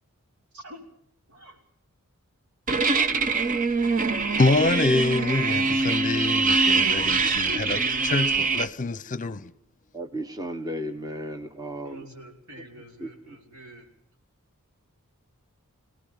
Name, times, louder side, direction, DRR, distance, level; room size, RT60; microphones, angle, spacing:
voice 1, 1.3-1.6 11.8-13.9, right 1 dB, 80° right, 6.0 m, -46 dB
sound 1, 2.7-8.7, right 4 dB, 35° right, 0.9 m, -23 dB
voice 2, 3.9-9.5, left 2 dB, 35° left, 0.8 m, -26 dB
voice 3, 9.9-12.1 12.5-12.6 13.0-13.4, equal, 15° right, 1.3 m, -35 dB
25.0 x 18.5 x 7.1 m
head